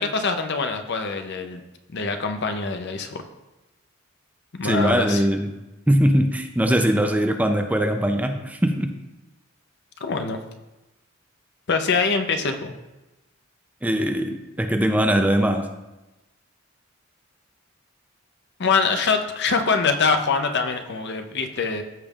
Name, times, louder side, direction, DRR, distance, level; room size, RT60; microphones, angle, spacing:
voice 1, 0.0-1.6 1.9-3.2 4.5-5.2 10.0-10.4 11.7-12.7 18.6-21.8, left 4 dB, 55° left, 6 dB, 0.7 m, -24 dB
voice 2, 4.6-5.5 5.9-8.9 13.8-15.7, equal, 5° right, 5 dB, 0.4 m, -21 dB
14.0 x 5.2 x 2.4 m, 1.0 s
head